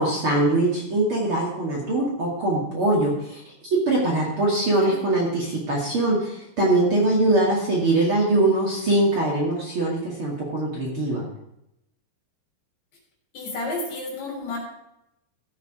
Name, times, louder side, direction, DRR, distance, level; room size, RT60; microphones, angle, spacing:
voice 1, 0.0-11.2, right 2 dB, 40° right, -4 dB, 2.5 m, -22 dB
voice 2, 4.5-5.0 13.3-14.6, left 2 dB, 60° left, -1 dB, 5.1 m, -32 dB
14.5 x 7.3 x 4.9 m, 0.82 s
omnidirectional pair, 4.6 m